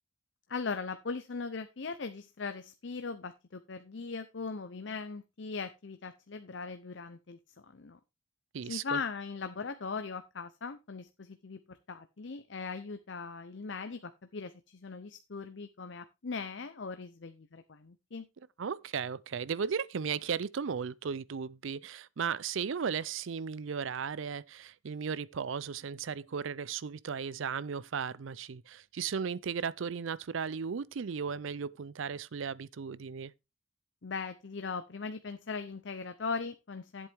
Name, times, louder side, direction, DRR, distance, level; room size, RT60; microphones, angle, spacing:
voice 1, 0.5-7.4 7.7-8.0 8.6-18.3 34.0-37.1, left 4 dB, 65° left, 0.6 m, -39 dB
voice 2, 8.5-9.0 18.6-33.3, right 6 dB, 75° right, 0.5 m, -36 dB
10.5 x 8.0 x 3.4 m
head